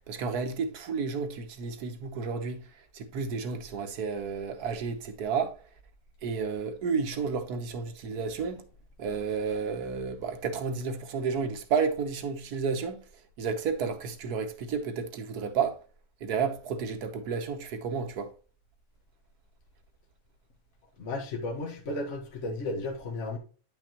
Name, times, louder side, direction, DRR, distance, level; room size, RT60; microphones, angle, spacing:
voice 1, 0.1-2.7 2.9-5.6 6.2-8.6 9.0-13.0 13.4-15.8 16.2-18.3, right 5 dB, 75° right, 1.5 m, -31 dB
voice 2, 21.0-23.4, left 2 dB, 50° left, 1.6 m, -34 dB
9.8 x 5.7 x 2.9 m
omnidirectional pair, 1.7 m